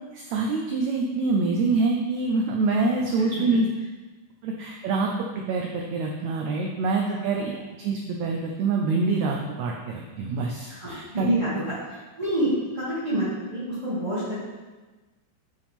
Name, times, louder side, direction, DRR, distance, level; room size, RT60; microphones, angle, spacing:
voice 1, 0.1-3.7 4.4-5.1 5.3-7.5 7.8-11.6, right 3 dB, 85° right, 0 dB, 1.6 m, -26 dB
voice 2, 10.7-11.5 12.2-13.3 13.5-14.4, right 1 dB, 15° right, -13 dB, 1.2 m, -27 dB
8.8 x 5.0 x 3.5 m, 1.2 s
omnidirectional pair, 3.9 m